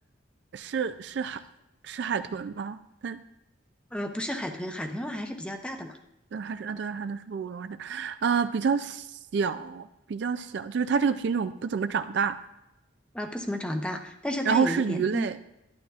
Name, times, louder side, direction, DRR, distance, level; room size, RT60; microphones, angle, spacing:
voice 1, 0.5-1.4 1.8-3.2 6.3-9.1 9.3-12.4 14.5-15.4, right 5 dB, 60° right, 12 dB, 0.3 m, -28 dB
voice 2, 3.9-6.0 13.1-15.3, equal, 5° left, 4 dB, 0.6 m, -32 dB
11.5 x 11.0 x 2.4 m, 0.89 s
head